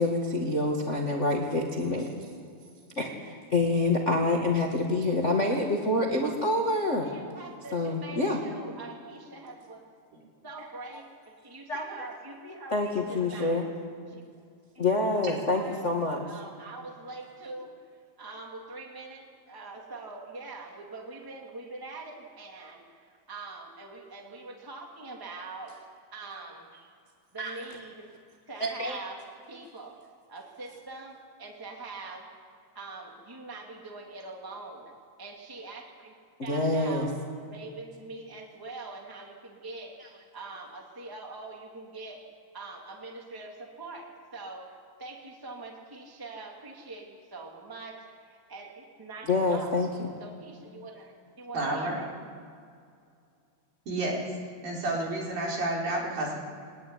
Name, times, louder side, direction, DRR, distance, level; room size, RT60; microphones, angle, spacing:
voice 1, 0.0-2.1 2.9-7.1 7.7-8.4 11.7-12.1 12.7-13.6 14.8-16.4 27.4-27.6 28.6-29.0 36.5-37.1 49.2-49.9, left 2 dB, 30° left, 0 dB, 1.5 m, -27 dB
voice 2, 7.0-9.8 10.4-13.6 14.1-14.2 14.7-15.1 15.5-15.9 16.2-17.7 18.2-25.8 26.1-26.7 27.3-28.1 28.5-30.0 30.3-32.3 32.7-34.9 35.2-36.1 36.4-37.1 37.4-39.9 40.3-42.2 42.5-49.8 50.2-52.1, right 3 dB, 5° right, 0 dB, 2.3 m, -43 dB
voice 3, 51.5-52.0 53.9-54.4 54.6-56.3, right 2 dB, 60° right, -2 dB, 5.9 m, -30 dB
23.5 x 19.0 x 9.9 m, 2.3 s
omnidirectional pair, 4.6 m